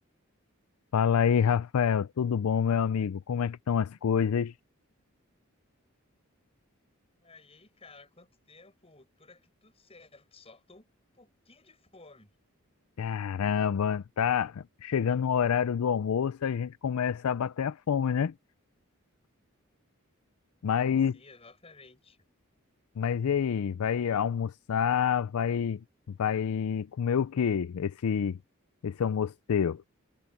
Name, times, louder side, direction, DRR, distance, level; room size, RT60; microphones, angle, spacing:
voice 1, 0.9-4.5 13.0-18.3 20.6-21.2 23.0-28.4 28.8-29.8, left 7 dB, 90° left, 0.4 m, -27 dB
voice 2, 7.2-10.9 11.1-12.3 20.7-22.2, left 3 dB, 30° left, 7.3 m, -55 dB
head